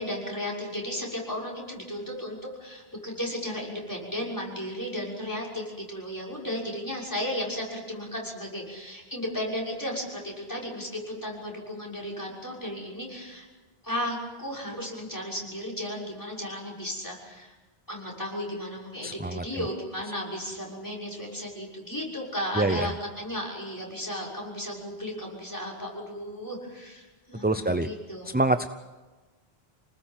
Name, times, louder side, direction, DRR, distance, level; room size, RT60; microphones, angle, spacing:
voice 1, 0.0-13.5 13.8-17.5 17.9-28.4, equal, 20° left, -3 dB, 6.3 m, -34 dB
voice 2, 19.0-19.4 22.6-22.9 27.4-27.9 28.3-28.8, right 2 dB, 10° right, 10 dB, 0.5 m, -25 dB
27.0 x 19.5 x 7.6 m, 1.2 s
omnidirectional pair, 1.0 m